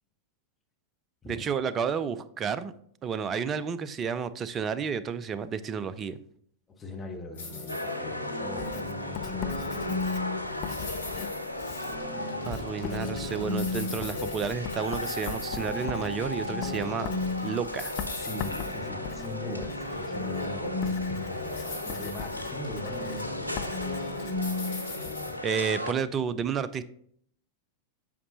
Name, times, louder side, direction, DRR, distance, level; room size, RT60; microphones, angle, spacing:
voice 1, 1.3-2.7 3.0-6.2 12.4-17.1 17.4-18.0 25.4-26.8, right 6 dB, 25° right, 15 dB, 0.4 m, -31 dB
voice 2, 6.7-10.7 13.7-13.9 18.1-24.1 25.0-25.4, left 2 dB, 20° left, 1 dB, 1.2 m, -41 dB
sound 1, 7.4-25.3, left 3 dB, 70° left, 1.6 m, -36 dB
sound 2, 7.7-25.9, left 1 dB, 90° right, 0.5 m, -36 dB
Writing, 8.6-25.2, left 8 dB, 40° left, 0.5 m, -41 dB
8.4 x 5.4 x 2.8 m, 0.64 s
figure-of-eight pair, 90°, 0 cm